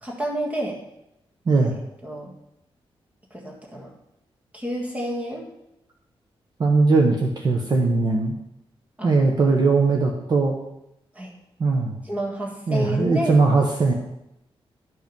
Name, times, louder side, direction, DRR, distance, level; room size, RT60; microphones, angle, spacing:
voice 1, 0.0-0.8 2.0-2.3 3.3-3.9 4.5-5.5 9.0-9.1 11.1-11.3 12.0-13.4, equal, 15° right, -1 dB, 1.6 m, -30 dB
voice 2, 1.5-1.8 6.6-8.3 9.0-10.5 11.6-12.0 12.7-13.9, right 3 dB, 45° right, 1 dB, 1.0 m, -19 dB
11.5 x 5.2 x 5.3 m, 0.85 s
wide cardioid pair, 165°, 10 cm